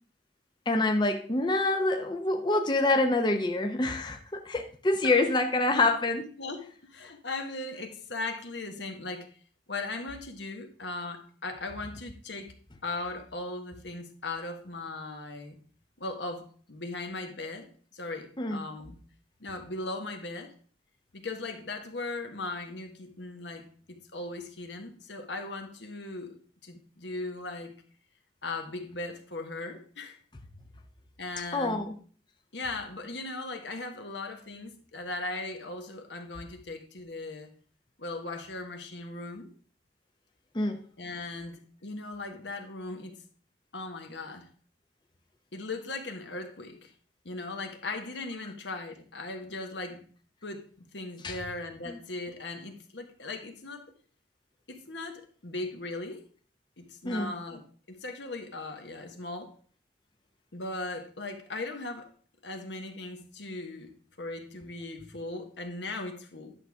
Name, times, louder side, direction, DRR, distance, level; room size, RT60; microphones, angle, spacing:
voice 1, 0.7-4.2 4.5-6.2 18.4-18.6 31.5-31.9 40.5-40.8 51.2-51.4 57.0-57.3, left 2 dB, 25° left, 4 dB, 0.6 m, -26 dB
voice 2, 6.4-9.3 9.7-12.5 12.8-15.6 16.0-17.7 17.9-19.0 19.4-20.5 21.1-27.7 28.4-30.2 31.2-31.8 32.5-37.5 38.0-39.5 41.0-43.2 43.7-44.5 45.5-46.9 47.2-50.0 50.4-53.9 54.7-56.2 56.8-57.6 57.9-59.5 60.5-62.1 62.4-63.9 64.2-66.5, left 2 dB, 75° left, 5 dB, 1.4 m, -38 dB
10.5 x 6.4 x 3.5 m, 0.44 s
head